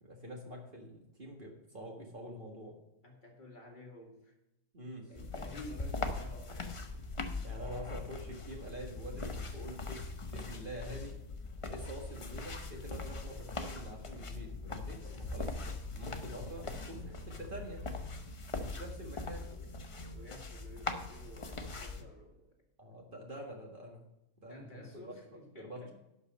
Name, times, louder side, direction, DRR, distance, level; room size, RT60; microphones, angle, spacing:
voice 1, 0.0-2.7 4.7-5.1 7.4-11.1 11.7-17.8 18.6-19.5 22.8-24.0 24.4-25.1 25.6-25.9, equal, 35° right, 0 dB, 1.7 m, -46 dB
voice 2, 3.0-4.4 5.1-6.8 11.7-12.1 16.6-17.0 18.6-18.8 20.1-22.5 23.1-23.2 24.4-25.9, left 1 dB, 30° left, 0 dB, 2.0 m, -52 dB
sound 1, 5.2-22.0, left 3 dB, 50° left, 0.4 m, -41 dB
sound 2, 12.8-22.4, left 1 dB, 80° right, 2.2 m, -55 dB
11.5 x 5.4 x 5.2 m, 0.91 s
omnidirectional pair, 1.7 m